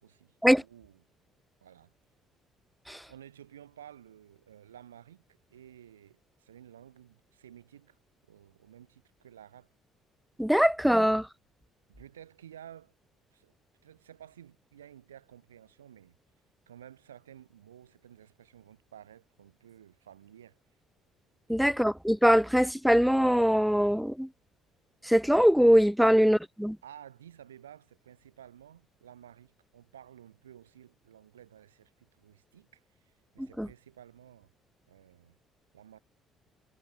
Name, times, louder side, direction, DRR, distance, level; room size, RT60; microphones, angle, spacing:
voice 1, 0.0-1.0 1.6-1.9 2.9-5.2 5.5-8.0 8.3-9.7 10.5-10.7 11.9-12.9 13.3-13.5 13.8-16.1 16.7-20.6 21.6-21.8 26.0-26.3 26.8-34.5 34.9-35.4 35.7-36.0, right 10 dB, 85° right, 3.4 m, -53 dB
voice 2, 10.4-11.3 21.5-24.3 25.0-26.8 33.4-33.7, equal, ahead, 1.1 m, -22 dB
hypercardioid pair, 50°, 0 cm